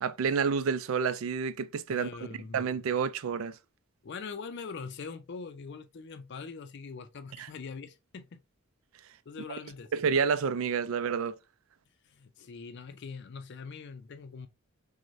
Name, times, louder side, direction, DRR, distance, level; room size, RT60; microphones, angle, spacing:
voice 1, 0.0-2.1 2.5-3.5 7.4-7.5 9.9-11.3, right 6 dB, 85° right, 0.4 m, -29 dB
voice 2, 1.9-2.6 4.0-8.4 9.3-9.9 12.0-14.5, left 5 dB, 60° left, 0.4 m, -42 dB
6.0 x 2.2 x 2.6 m
head